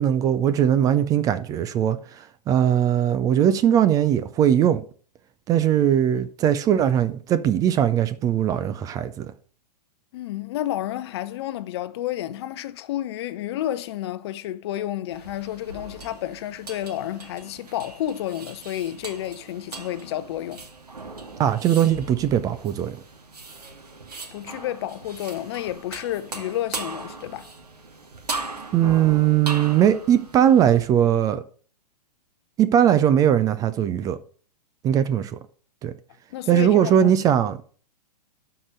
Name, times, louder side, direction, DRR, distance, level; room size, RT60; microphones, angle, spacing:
voice 1, 0.0-4.8 5.5-9.3 21.4-23.0 28.7-31.4 32.6-34.2 34.8-35.4 35.8-35.9 36.5-37.6, right 10 dB, 15° right, 0.5 m, -20 dB
voice 2, 10.1-20.6 24.3-27.5 36.3-37.1, left 13 dB, 40° left, 0.8 m, -30 dB
sound 1, 15.1-30.8, right 3 dB, 70° right, 2.3 m, -38 dB
12.5 x 5.0 x 6.5 m
figure-of-eight pair, 110°, 21 cm